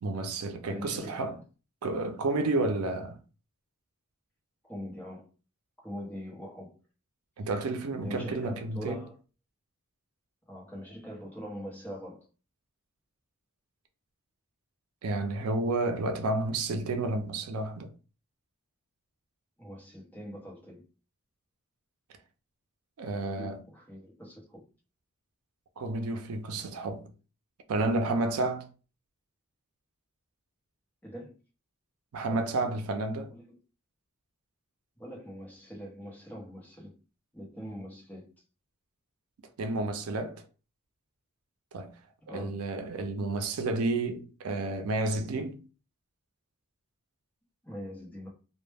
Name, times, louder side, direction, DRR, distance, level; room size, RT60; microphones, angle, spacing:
voice 1, 0.0-1.4 1.8-3.2 7.4-9.0 15.0-17.9 23.0-23.6 25.8-27.1 27.7-28.7 32.1-33.3 39.6-40.4 41.7-41.9 42.3-45.6, right 2 dB, 80° right, 0.4 m, -31 dB
voice 2, 0.6-1.4 4.6-5.3 5.8-6.8 8.0-9.2 10.5-12.2 19.6-20.8 23.1-24.6 31.0-31.4 32.3-32.4 33.3-33.6 35.0-36.9 37.3-38.3 42.3-42.6 47.6-48.3, equal, 10° left, 0.7 m, -43 dB
2.1 x 2.0 x 3.2 m
head